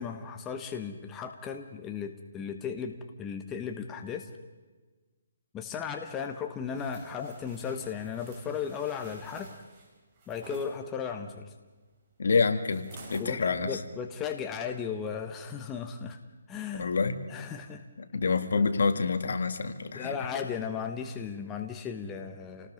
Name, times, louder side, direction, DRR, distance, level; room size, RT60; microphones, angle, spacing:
voice 1, 0.0-4.3 5.5-9.5 10.3-11.5 13.2-13.4 13.6-16.2 16.5-16.9 17.3-17.8 18.6-18.7 19.9-22.7, left 7 dB, 10° left, 5 dB, 1.1 m, -36 dB
sound 1, 6.7-10.7 12.7-13.3 13.8-14.0, right 3 dB, 25° right, 5.3 m, -51 dB
voice 2, 12.2-13.8 16.7-17.2 18.1-20.1, left 4 dB, 65° left, 8 dB, 2.1 m, -27 dB
29.0 x 19.5 x 5.2 m, 1.3 s
hypercardioid pair, 165°, 0 cm